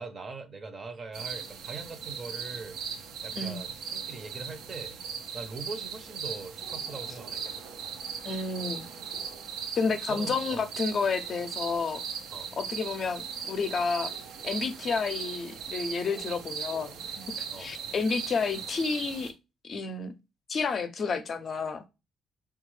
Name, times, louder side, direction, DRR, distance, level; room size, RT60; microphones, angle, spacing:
voice 1, 0.0-2.8 3.2-5.0 5.3-7.4 10.1-10.7 12.3-12.5 17.5-17.8, right 3 dB, 40° right, 0.6 m, -41 dB
sound 1, 1.1-19.3, right 7 dB, 85° right, 0.5 m, -38 dB
voice 2, 8.2-8.8 9.8-12.0 12.6-14.1 14.4-17.0 17.6-19.3 19.6-20.1 20.5-21.8, left 4 dB, 50° left, 0.5 m, -30 dB
3.5 x 2.3 x 3.1 m
cardioid pair, 90°, 0 cm